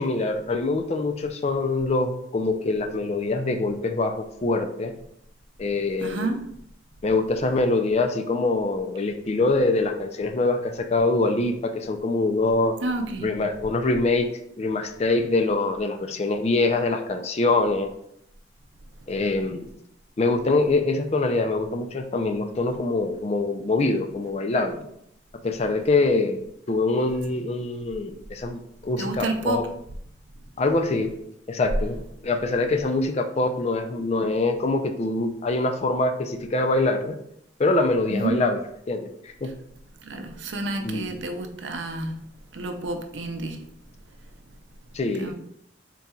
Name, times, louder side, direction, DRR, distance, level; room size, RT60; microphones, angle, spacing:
voice 1, 0.0-4.9 5.6-6.3 7.0-12.8 13.2-14.3 14.6-17.9 19.1-19.7 20.2-24.9 25.4-29.6 30.6-31.1 31.5-37.2 37.6-38.6 38.9-39.5 40.8-41.2 44.9-45.3, left 2 dB, 35° left, 6 dB, 0.4 m, -24 dB
voice 2, 6.0-6.4 12.8-13.3 29.0-29.6 38.1-38.4 40.1-42.1 42.5-43.6 45.2-45.3, right 2 dB, 80° right, 5 dB, 0.6 m, -29 dB
4.2 x 3.8 x 2.3 m, 0.73 s
head